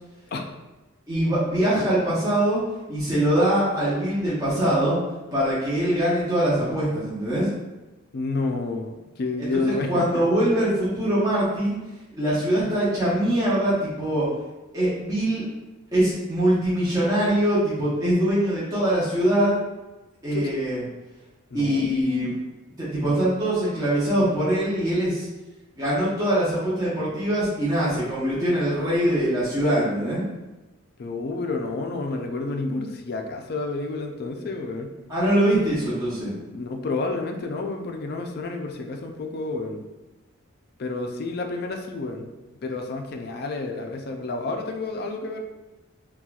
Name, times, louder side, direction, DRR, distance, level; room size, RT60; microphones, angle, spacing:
voice 1, 1.1-2.6 2.9-5.0 5.3-7.5 9.4-11.8 12.1-14.3 14.7-15.4 15.9-19.6 20.2-20.8 21.5-22.4 22.8-25.3 25.8-30.2 35.1-36.3, right 1 dB, 15° right, -10 dB, 0.7 m, -23 dB
voice 2, 8.1-10.3 20.3-20.4 21.5-22.3 31.0-34.9 36.5-39.8 40.8-42.3 42.6-45.4, left 3 dB, 50° left, 3 dB, 0.4 m, -30 dB
4.2 x 2.3 x 2.3 m, 1.1 s
head